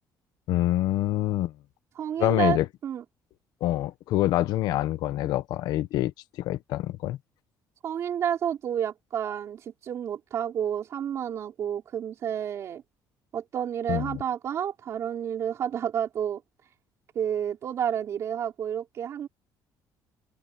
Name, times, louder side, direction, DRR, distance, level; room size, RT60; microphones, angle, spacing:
voice 1, 0.5-1.5 2.2-2.7 3.6-6.1 6.4-7.2 13.9-14.2, left 15 dB, 70° left, 1.0 m, -26 dB
voice 2, 2.0-3.0 7.8-12.8 13.3-16.4 17.1-19.3, right 9 dB, 40° right, 4.4 m, -30 dB
cardioid pair, 180°, 7 cm